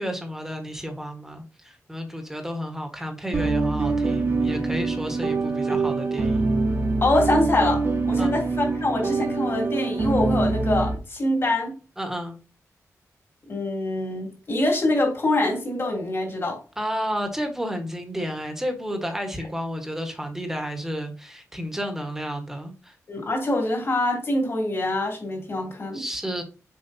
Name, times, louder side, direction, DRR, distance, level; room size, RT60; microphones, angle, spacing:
voice 1, 0.0-6.5 8.2-8.4 12.0-12.4 16.8-23.0 25.9-26.4, equal, 5° right, 5 dB, 1.4 m, -31 dB
sound 1, 3.3-11.0, right 3 dB, 45° right, 1.4 m, -24 dB
voice 2, 7.0-11.7 13.5-16.6 23.1-26.0, left 2 dB, 45° left, -1 dB, 2.9 m, -25 dB
6.9 x 5.0 x 2.8 m, 0.34 s
wide cardioid pair, 130°, 6 cm